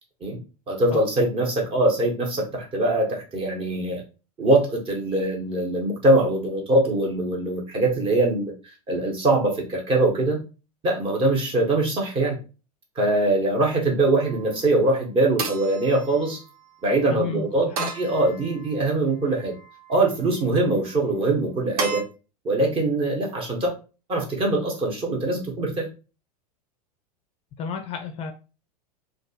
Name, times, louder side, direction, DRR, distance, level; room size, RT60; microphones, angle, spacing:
voice 1, 0.7-4.0 4.4-8.5 8.9-10.4 10.8-12.4 13.0-16.4 16.8-17.7 17.9-19.5 19.9-22.1 22.4-23.7 24.1-25.9, right 2 dB, 25° right, 1 dB, 1.0 m, -22 dB
sound 1, 14.1-14.6 15.4-16.8 17.8-18.9 19.4-20.1 21.8-22.0, right 4 dB, 65° right, 0.7 m, -34 dB
voice 2, 17.1-17.5 17.8-17.9 27.6-28.3, left 5 dB, 30° left, 5 dB, 0.4 m, -31 dB
3.1 x 2.3 x 2.7 m, 0.33 s
figure-of-eight pair, 90°, 20 cm